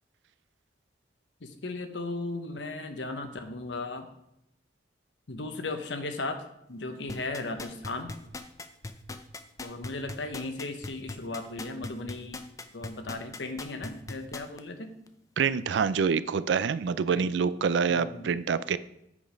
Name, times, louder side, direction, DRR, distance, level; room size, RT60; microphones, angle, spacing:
voice 1, 1.4-4.1 5.3-8.1 9.6-12.4 12.7-14.9 17.1-17.3 17.9-18.4, left 2 dB, 80° left, 8 dB, 0.9 m, -36 dB
sound 1, 7.1-14.6 15.1-15.2, left 2 dB, 20° left, 0.5 m, -39 dB
voice 2, 15.4-18.8, right 6 dB, 80° right, 16 dB, 0.4 m, -26 dB
8.4 x 5.1 x 5.2 m, 0.81 s
head